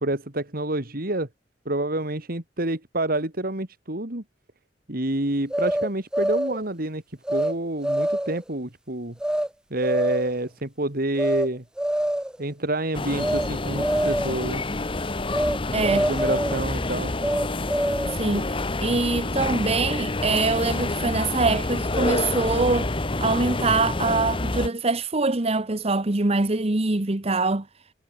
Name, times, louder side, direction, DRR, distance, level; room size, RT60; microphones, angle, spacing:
voice 1, 0.0-1.3 1.6-4.2 4.9-7.0 7.3-9.2 9.7-11.6 12.4-14.6 15.9-17.1, right 1 dB, 55° right, 3.0 m, -28 dB
sound 1, 5.5-6.6 7.3-7.5 7.8-8.4 9.2-9.5 9.8-10.4 11.2-11.5 11.8-12.4 13.2-13.5 13.8-14.4 15.3-15.6 15.8-16.6 17.2-18.2, right 1 dB, 5° right, 0.5 m, -25 dB
sound 2, 12.9-24.7, left 2 dB, 30° left, 1.2 m, -28 dB
voice 2, 15.7-16.1 18.1-22.9 23.2-27.7, right 3 dB, 35° right, 1.1 m, -24 dB
head